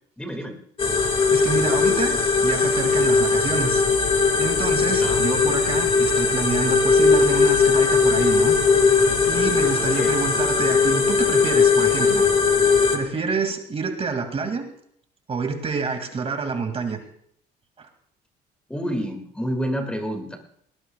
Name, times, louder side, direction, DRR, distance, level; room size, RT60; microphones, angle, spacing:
voice 1, 0.2-0.6 4.9-5.2 9.9-10.2 18.7-20.4, equal, 5° left, 4 dB, 2.2 m, -29 dB
sound 1, 0.8-13.0, left 5 dB, 30° left, 2.0 m, -19 dB
voice 2, 1.3-3.8 4.4-8.6 9.3-12.3 12.9-14.7 15.3-17.0 17.8-17.9, right 4 dB, 35° right, 5 dB, 2.4 m, -27 dB
19.5 x 18.5 x 2.4 m, 0.65 s
cardioid pair, 110°, 17 cm